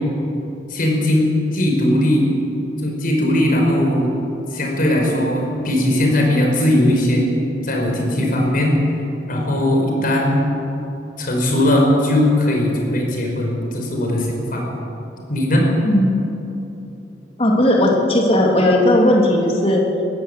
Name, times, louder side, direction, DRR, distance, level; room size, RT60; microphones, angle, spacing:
voice 1, 0.7-2.3 2.8-4.1 4.5-7.3 7.6-8.7 9.3-10.4 11.2-14.6 15.3-15.6, left 1 dB, 55° left, 0 dB, 5.2 m, -18 dB
voice 2, 15.8-16.2 17.4-19.8, left 1 dB, 35° left, -1 dB, 3.1 m, -16 dB
21.5 x 15.0 x 8.4 m, 2.9 s
head